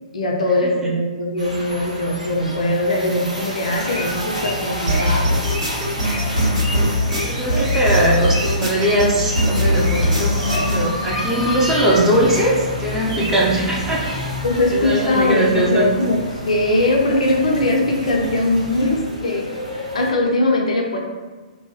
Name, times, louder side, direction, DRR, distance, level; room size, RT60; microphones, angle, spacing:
voice 1, 0.1-5.4 14.4-19.5 19.7-21.0, left 2 dB, 65° left, 0 dB, 0.5 m, -20 dB
sound 1, 1.4-20.1, left 1 dB, 90° right, 0.8 m, -30 dB
sound 2, 3.7-19.0, right 1 dB, 50° right, 0.9 m, -33 dB
sound 3, 4.9-10.9, left 1 dB, 75° right, 1.2 m, -20 dB
voice 2, 7.2-14.1 14.7-15.9, right 1 dB, 10° right, -6 dB, 0.5 m, -20 dB
2.6 x 2.2 x 2.8 m, 1.4 s
figure-of-eight pair, 115°, 4 cm